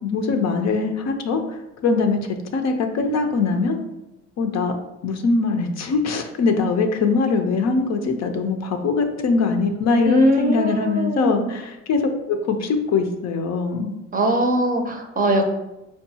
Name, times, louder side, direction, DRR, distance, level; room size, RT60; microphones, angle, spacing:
voice 1, 0.0-3.8 4.4-4.7 5.0-12.0 12.3-13.9, left 4 dB, 60° left, 5 dB, 0.5 m, -22 dB
voice 2, 10.0-11.5 14.1-15.5, equal, 30° right, 4 dB, 0.5 m, -21 dB
4.5 x 2.3 x 2.7 m, 0.93 s
cardioid pair, 90°, 30 cm